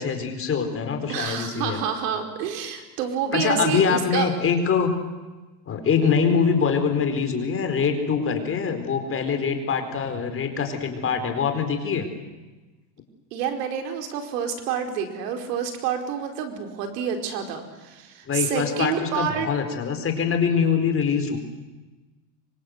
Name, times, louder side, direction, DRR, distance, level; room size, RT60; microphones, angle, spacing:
voice 1, 0.0-1.8 3.3-4.9 5.7-12.1 18.3-21.4, left 6 dB, 25° left, 6 dB, 4.5 m, -24 dB
voice 2, 1.1-4.3 13.3-19.5, right 8 dB, 80° right, 5 dB, 4.9 m, -28 dB
26.5 x 24.5 x 8.1 m, 1.2 s
supercardioid pair, 140°, 47 cm